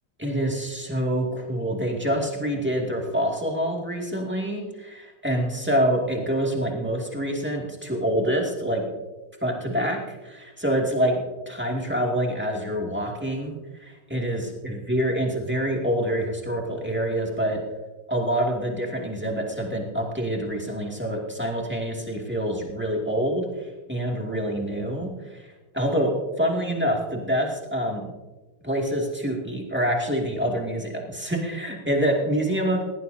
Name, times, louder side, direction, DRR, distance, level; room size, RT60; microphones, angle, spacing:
voice 1, 0.2-8.9 9.4-17.6 18.1-25.5 25.7-28.1 28.6-32.8, equal, 5° right, -1 dB, 2.1 m, -26 dB
18.5 x 15.5 x 2.8 m, 1.2 s
omnidirectional pair, 2.4 m